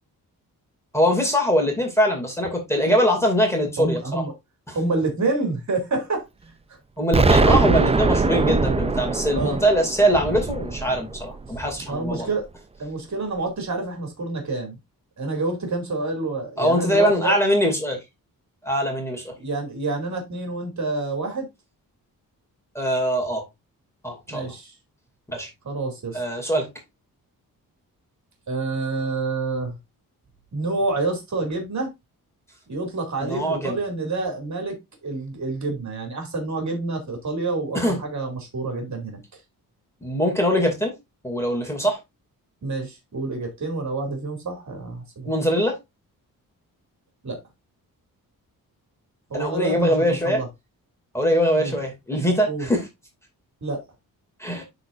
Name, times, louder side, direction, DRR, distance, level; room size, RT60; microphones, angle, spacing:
voice 1, 0.9-4.2 4.7-4.8 7.0-12.3 16.6-18.0 18.6-19.3 22.7-23.4 24.0-24.5 25.3-25.5 26.1-26.7 33.2-33.8 37.7-38.0 40.0-40.9 41.2-42.0 45.3-45.8 49.3-50.4 51.1-52.9 54.4-54.6, equal, 5° left, 2.3 m, -22 dB
voice 2, 3.8-4.3 4.7-6.2 9.3-9.6 11.9-12.5 12.8-14.8 15.2-17.3 19.4-21.5 24.3-24.7 25.6-26.2 28.5-29.8 30.5-31.9 32.7-34.8 35.0-39.2 42.6-45.3 47.2-47.4 49.3-50.5 51.6-51.7 52.4-52.7 53.6-53.8, right 3 dB, 50° right, 2.7 m, -28 dB
Explosion, 7.1-12.0, right 3 dB, 15° right, 0.5 m, -21 dB
11.5 x 4.0 x 2.5 m
wide cardioid pair, 105°, 36 cm